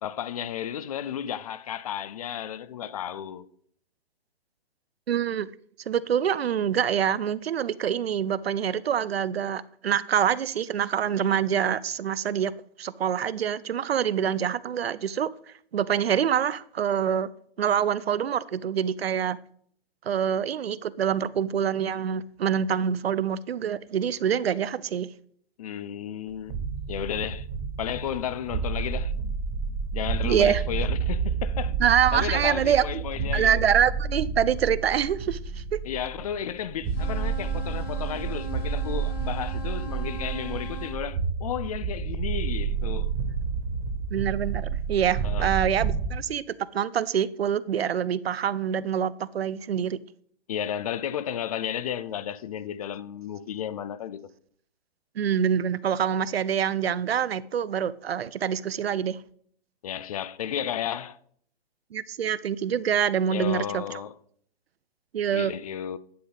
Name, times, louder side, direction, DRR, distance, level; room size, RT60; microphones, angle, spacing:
voice 1, 0.0-3.5 25.6-27.5 27.8-29.1 29.9-33.6 35.8-43.1 45.2-45.5 50.5-54.3 59.8-61.2 63.2-64.1 65.3-66.0, left 9 dB, 40° left, 0.4 m, -33 dB
voice 2, 5.1-5.5 5.9-12.5 12.8-15.3 15.7-17.3 17.6-19.4 20.1-25.1 30.2-30.6 31.8-33.0 33.3-35.8 44.1-50.0 55.2-59.2 61.9-63.8 65.1-65.5, right 8 dB, 80° right, 0.5 m, -25 dB
sound 1, 26.3-46.1, right 5 dB, 35° right, 1.7 m, -30 dB
sound 2, 36.9-41.0, right 4 dB, 80° left, 3.0 m, -40 dB
10.5 x 5.3 x 3.9 m
figure-of-eight pair, 120°, 30 cm